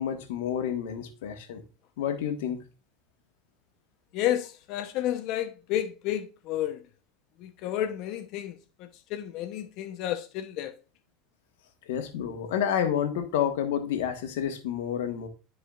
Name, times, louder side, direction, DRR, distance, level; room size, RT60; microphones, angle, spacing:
voice 1, 0.0-1.6 2.0-2.6 11.9-15.3, left 9 dB, 80° left, 1.4 m, -29 dB
voice 2, 4.1-6.8 7.4-10.7, left 12 dB, 60° left, 0.8 m, -31 dB
13.0 x 4.8 x 2.4 m
supercardioid pair, 110°, 0 cm